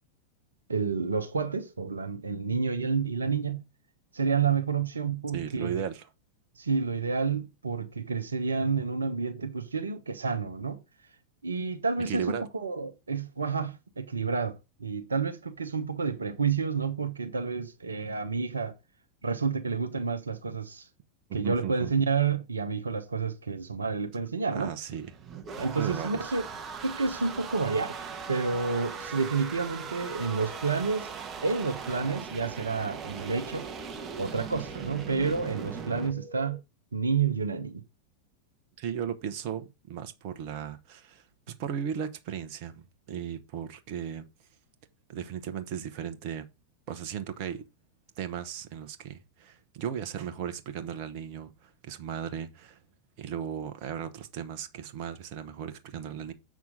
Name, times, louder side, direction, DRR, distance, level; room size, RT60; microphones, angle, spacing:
voice 1, 0.7-3.6 4.1-5.8 6.6-10.8 11.4-18.7 19.2-20.9 21.3-24.7 25.6-26.4 26.8-31.1 31.4-33.7 34.2-36.6 36.9-37.8, right 5 dB, 75° right, 0.9 m, -29 dB
voice 2, 5.3-6.1 12.1-12.5 21.3-21.9 24.5-25.1 25.8-26.4 38.8-44.3 45.1-46.5 46.9-47.6 48.2-52.8 53.2-56.3, right 8 dB, 45° right, 1.1 m, -36 dB
sound 1, 24.9-36.1, right 6 dB, 25° right, 1.2 m, -39 dB
sound 2, 28.6-30.6 34.5-36.6, left 2 dB, 45° left, 5.2 m, -48 dB
7.3 x 6.0 x 3.9 m
figure-of-eight pair, 90°, 0 cm